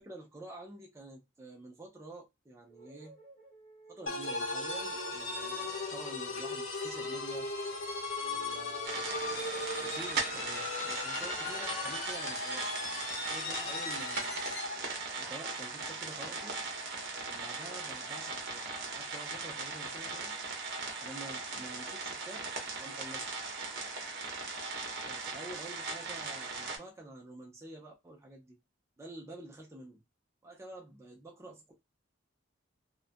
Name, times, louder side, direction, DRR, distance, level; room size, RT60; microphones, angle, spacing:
voice 1, 0.0-3.1 3.9-7.5 8.2-12.7 13.2-14.4 15.2-16.6 17.3-18.7 18.9-20.3 21.0-22.5 22.7-23.4 25.0-28.6 29.0-30.0 30.4-31.7, right 2 dB, 15° right, 0.4 m, -49 dB
sound 1, 2.7-4.5 5.8-6.5 6.8-7.8 8.1-9.3 10.3-12.1 13.2-14.9, right 1 dB, 35° left, 0.8 m, -58 dB
sound 2, 4.1-14.8, left 3 dB, 80° left, 0.8 m, -37 dB
sound 3, 8.8-26.8, right 4 dB, 55° right, 0.7 m, -39 dB
2.4 x 2.2 x 2.5 m
head